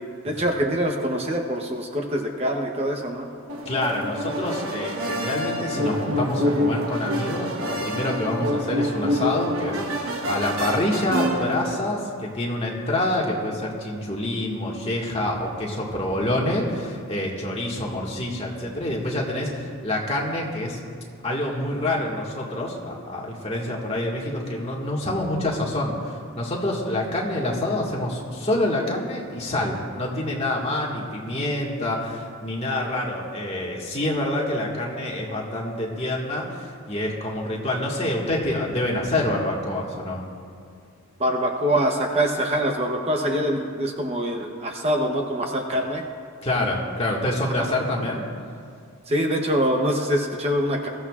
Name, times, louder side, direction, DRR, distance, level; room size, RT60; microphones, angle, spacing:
voice 1, 0.2-3.3 41.2-46.0 47.6-47.7 49.1-50.9, equal, 30° right, 2 dB, 0.9 m, -24 dB
sound 1, 3.5-11.8, equal, 70° right, 1.2 m, -27 dB
voice 2, 3.7-20.8 21.2-40.2 46.4-48.2, left 1 dB, 30° left, -3 dB, 1.8 m, -27 dB
21.5 x 14.5 x 2.4 m, 2.3 s
head